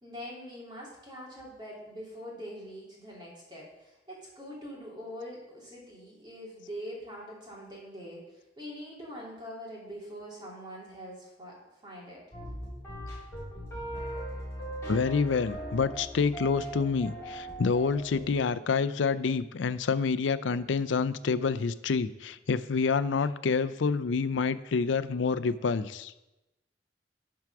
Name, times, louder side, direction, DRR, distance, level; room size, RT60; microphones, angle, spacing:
voice 1, 0.0-11.6 11.8-12.2, equal, 25° right, -4 dB, 2.8 m, -43 dB
sound 1, 12.3-18.3, right 1 dB, 15° left, 3.3 m, -39 dB
voice 2, 14.9-26.1, left 5 dB, 80° left, 15 dB, 0.5 m, -28 dB
10.5 x 4.7 x 6.0 m, 0.97 s
head